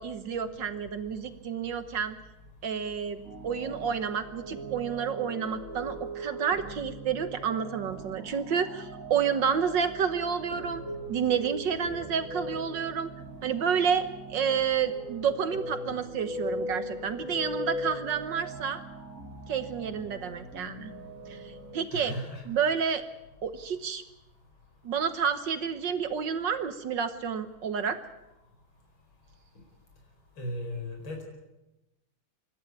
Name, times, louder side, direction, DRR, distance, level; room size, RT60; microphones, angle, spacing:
voice 1, 0.0-2.2 2.6-10.8 11.1-13.1 13.4-18.8 19.5-20.9 21.3-22.1 22.5-23.0 23.4-24.0 24.8-28.0, right 7 dB, 65° right, 10 dB, 1.7 m, -30 dB
sound 1, 3.2-21.8, right 1 dB, 40° right, 3.8 m, -40 dB
voice 2, 21.9-22.4 30.4-31.2, left 1 dB, 75° left, 2 dB, 5.7 m, -36 dB
25.5 x 12.5 x 10.0 m, 0.98 s
omnidirectional pair, 2.2 m